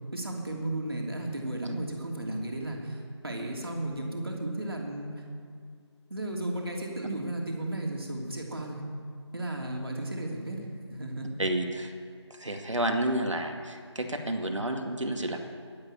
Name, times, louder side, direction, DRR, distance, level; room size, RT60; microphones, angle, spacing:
voice 1, 0.1-5.1 6.1-8.8 9.3-11.3, right 1 dB, 55° right, 0 dB, 2.8 m, -34 dB
voice 2, 11.4-11.9 12.3-15.5, right 1 dB, 85° right, 4 dB, 2.2 m, -30 dB
11.5 x 11.0 x 8.7 m, 2.1 s
figure-of-eight pair, 175°, 15 cm